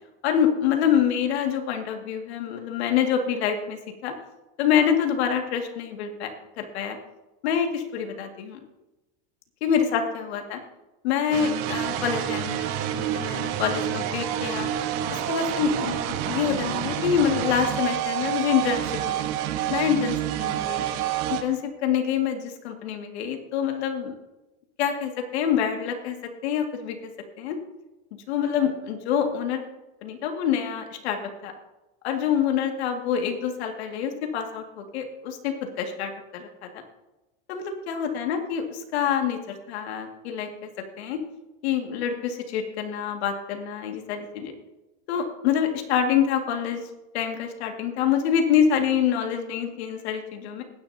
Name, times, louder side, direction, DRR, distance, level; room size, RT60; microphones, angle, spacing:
voice 1, 0.2-4.1 4.6-6.3 6.6-7.0 7.4-8.6 9.6-10.6 11.0-14.7 15.3-19.3 19.7-20.8 21.3-24.1 24.8-27.1 27.4-27.6 28.3-29.6 30.0-31.5 32.0-36.5 37.5-40.5 41.0-41.2 41.6-44.5 45.1-46.8 47.1-50.6, left 8 dB, 80° left, 4 dB, 2.1 m, -26 dB
sound 1, 11.3-21.4, right 11 dB, 55° right, 1.4 m, -28 dB
20.0 x 10.0 x 2.8 m, 1.0 s
supercardioid pair, 125°, 32 cm